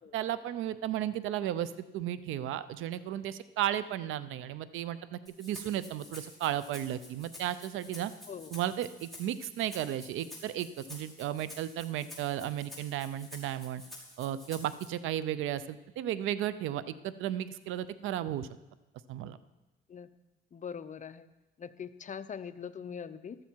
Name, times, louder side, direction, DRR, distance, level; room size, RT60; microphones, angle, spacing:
voice 1, 0.1-8.1 8.5-13.8 14.2-18.5 19.1-19.4, right 11 dB, 90° right, 15 dB, 0.6 m, -34 dB
Rattle (instrument), 5.3-14.9, left 1 dB, ahead, 5.5 m, -50 dB
voice 2, 20.5-21.3 21.6-23.4, left 7 dB, 40° left, 11 dB, 0.7 m, -42 dB
14.5 x 12.5 x 4.6 m, 1.0 s
cardioid pair, 90°, 20 cm